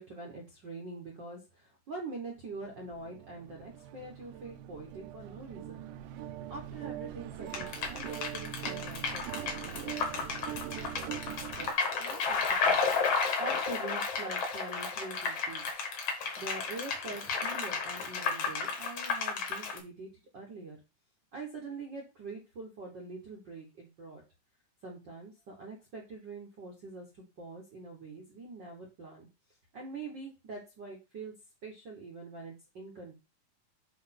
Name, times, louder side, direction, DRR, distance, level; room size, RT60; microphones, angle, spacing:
voice 1, 0.0-5.8 6.3-11.7 12.0-15.6 16.4-20.8 21.3-24.2 24.8-29.3 29.7-31.3 31.6-33.1, right 3 dB, 65° right, 0 dB, 1.1 m, -45 dB
sound 1, 2.5-11.7, right 11 dB, 80° right, 2.2 m, -42 dB
sound 2, 7.5-19.8, left 5 dB, 55° left, 2.1 m, -32 dB
8.4 x 2.9 x 5.8 m, 0.28 s
omnidirectional pair, 4.0 m